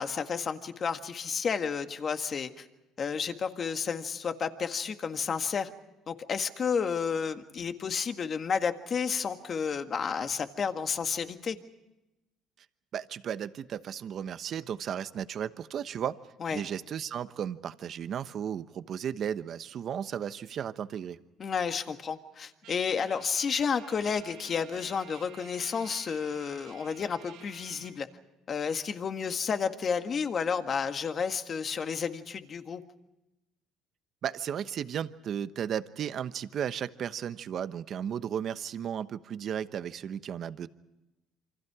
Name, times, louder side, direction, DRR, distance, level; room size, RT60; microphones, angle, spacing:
voice 1, 0.0-2.7 3.0-5.7 6.1-11.6 16.4-16.6 21.4-28.1 28.5-32.8, left 6 dB, 40° left, 7 dB, 1.8 m, -31 dB
voice 2, 12.9-16.2 16.5-21.2 34.2-40.7, right 9 dB, 50° right, 12 dB, 1.0 m, -34 dB
Trumpet, 22.6-28.0, right 9 dB, 85° right, 4.2 m, -53 dB
28.0 x 25.0 x 4.9 m, 0.95 s
cardioid pair, 100°, 0 cm